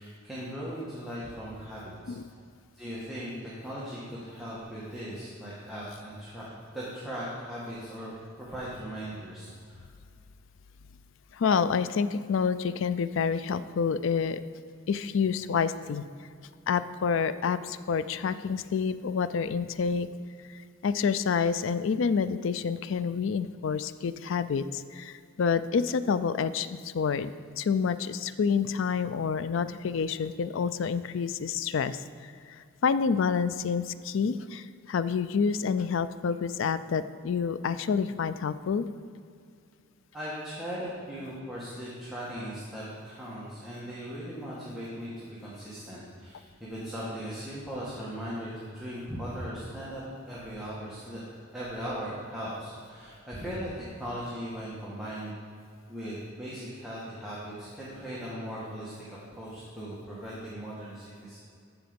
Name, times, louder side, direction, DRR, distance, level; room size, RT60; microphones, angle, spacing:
voice 1, 0.0-2.1 2.7-6.5 6.7-9.8 40.1-55.3 55.9-61.4, equal, ahead, -9 dB, 1.6 m, -38 dB
voice 2, 11.3-14.4 14.9-16.0 16.7-20.1 20.5-38.9, left 6 dB, 65° left, 14 dB, 0.4 m, -28 dB
14.0 x 4.8 x 5.2 m, 2.3 s
head